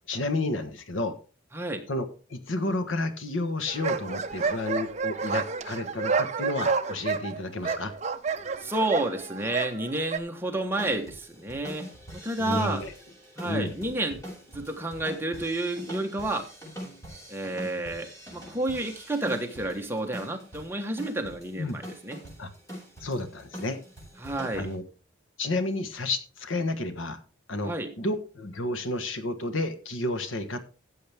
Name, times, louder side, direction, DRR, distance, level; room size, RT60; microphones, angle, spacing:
voice 1, 0.1-1.1 1.9-2.0 2.3-7.9 12.4-12.9 13.4-13.7 21.5-21.8 22.4-22.5 23.0-23.8 24.5-24.8 25.4-27.2 27.5-30.7, left 2 dB, 85° left, 9 dB, 1.4 m, -31 dB
voice 2, 1.5-1.8 8.6-11.9 12.1-12.8 13.4-14.2 14.5-16.4 17.3-22.2 24.2-24.7 27.6-27.9, right 2 dB, 10° right, 3 dB, 1.3 m, -30 dB
sound 1, 3.7-10.2, right 5 dB, 35° right, 0.6 m, -30 dB
sound 2, 10.8-24.7, equal, 15° left, 6.8 m, -43 dB
14.0 x 7.9 x 3.5 m, 0.36 s
head